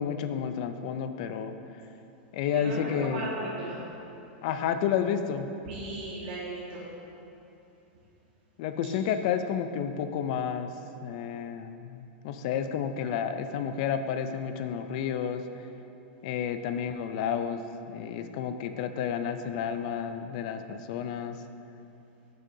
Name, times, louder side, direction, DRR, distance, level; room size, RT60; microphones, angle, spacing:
voice 1, 0.0-1.5 2.3-3.3 4.4-5.5 8.6-10.7 11.0-15.5 16.2-17.6 17.9-21.4, left 8 dB, 40° left, 9 dB, 0.4 m, -31 dB
voice 2, 2.5-3.8 5.7-6.8, right 2 dB, 50° right, -9 dB, 1.7 m, -36 dB
13.5 x 6.5 x 2.7 m, 2.8 s
supercardioid pair, 175°, 6 cm